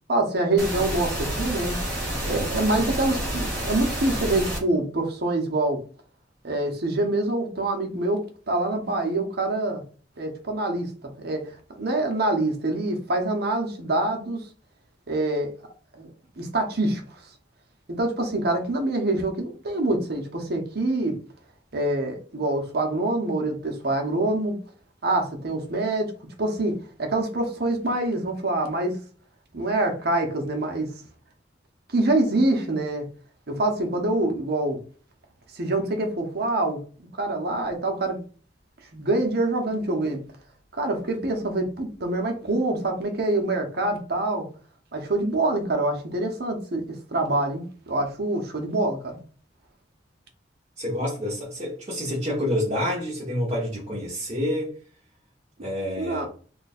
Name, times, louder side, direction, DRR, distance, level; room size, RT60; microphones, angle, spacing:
voice 1, 0.1-1.8 2.2-5.8 6.4-8.2 8.5-9.8 10.2-14.4 15.1-15.5 15.9-16.1 16.4-17.2 17.9-21.1 21.7-24.6 25.0-26.1 26.4-26.7 27.0-28.9 29.5-30.9 31.9-33.0 33.5-34.8 35.5-36.8 37.2-38.2 38.9-40.2 40.7-44.4 44.9-46.8 47.1-49.2 56.0-56.2, right 2 dB, 60° right, 0.9 m, -25 dB
sound 1, 0.6-4.6, right 1 dB, 5° left, 1.3 m, -29 dB
voice 2, 50.8-54.7 55.6-56.2, left 1 dB, 30° right, 1.0 m, -28 dB
3.0 x 2.4 x 4.2 m
head